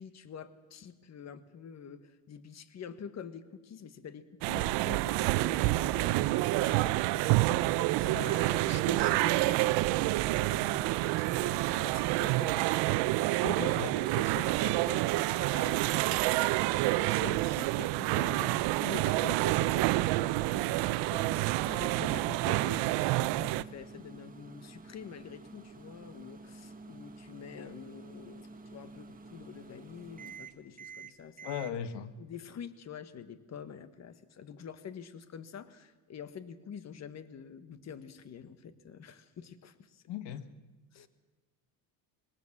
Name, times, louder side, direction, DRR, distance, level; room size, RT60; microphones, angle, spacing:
voice 1, 0.0-31.5 32.2-40.0 40.9-41.1, left 7 dB, 40° left, 13 dB, 1.4 m, -47 dB
sound 1, 4.4-23.6, right 18 dB, 80° right, 0.7 m, -28 dB
voice 2, 13.4-13.9 27.6-27.7 31.4-32.1 40.1-40.5, left 8 dB, 75° left, 12 dB, 1.3 m, -38 dB
Microwave oven, 20.2-31.7, right 3 dB, 20° right, 1.8 m, -49 dB
21.5 x 19.0 x 7.3 m, 1.2 s
cardioid pair, 110°, 41 cm